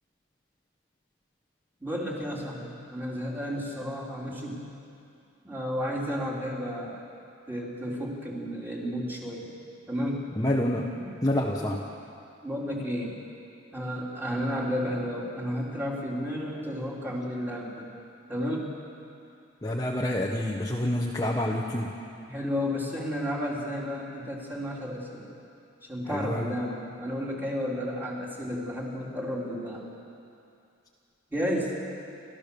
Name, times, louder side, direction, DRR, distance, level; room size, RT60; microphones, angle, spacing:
voice 1, 1.8-4.6 5.4-7.0 7.5-9.5 9.9-10.2 10.9-11.1 11.6-11.7 12.4-13.2 13.7-17.9 18.3-18.8 22.3-25.3 25.9-29.8 31.3-31.7, equal, 10° right, -4 dB, 3.4 m, -32 dB
voice 2, 10.4-11.0 11.2-11.8 19.6-21.9 26.1-26.5, left 1 dB, 20° left, -1 dB, 1.1 m, -27 dB
29.5 x 14.0 x 6.9 m, 2.6 s
head